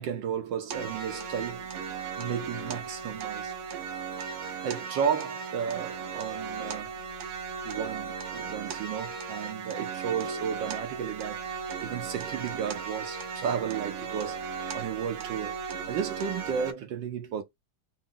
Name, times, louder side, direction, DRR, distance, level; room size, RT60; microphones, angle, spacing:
voice 1, 0.0-1.7 2.2-3.5 4.6-7.0 7.6-15.6 15.9-17.4, right 7 dB, 70° right, 1.2 m, -33 dB
sound 1, 0.7-16.7, right 6 dB, 90° right, 1.7 m, -36 dB
4.0 x 2.1 x 3.7 m
omnidirectional pair, 2.4 m